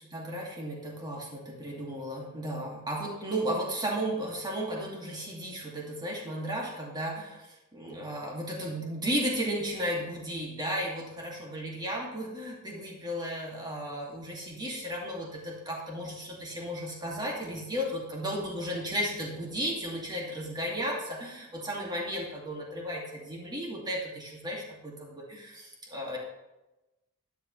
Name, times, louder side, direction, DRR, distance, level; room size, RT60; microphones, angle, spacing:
voice 1, 0.1-26.2, equal, 20° right, -2 dB, 2.3 m, -34 dB
13.0 x 11.5 x 3.2 m, 1.0 s
head